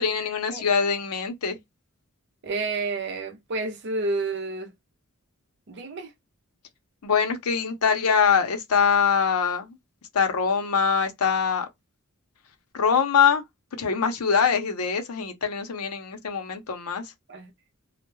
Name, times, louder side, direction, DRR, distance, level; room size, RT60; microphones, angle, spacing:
voice 1, 0.0-1.6 7.0-9.8 10.1-11.7 12.7-13.4 13.7-17.1, left 6 dB, 90° left, 0.6 m, -23 dB
voice 2, 2.4-4.7 5.7-6.1 17.3-17.5, right 3 dB, 50° right, 0.5 m, -30 dB
2.2 x 2.1 x 3.0 m
head